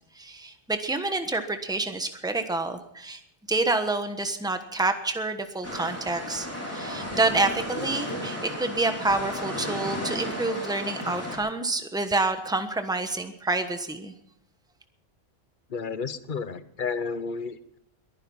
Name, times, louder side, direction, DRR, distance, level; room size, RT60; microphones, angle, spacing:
voice 1, 0.1-3.2 3.5-14.1, right 2 dB, 5° right, 7 dB, 1.2 m, -28 dB
sound 1, 5.6-11.4, equal, 15° left, 4.2 m, -34 dB
voice 2, 15.7-17.8, left 5 dB, 50° left, 13 dB, 1.0 m, -32 dB
21.5 x 10.5 x 5.6 m, 0.72 s
omnidirectional pair, 1.1 m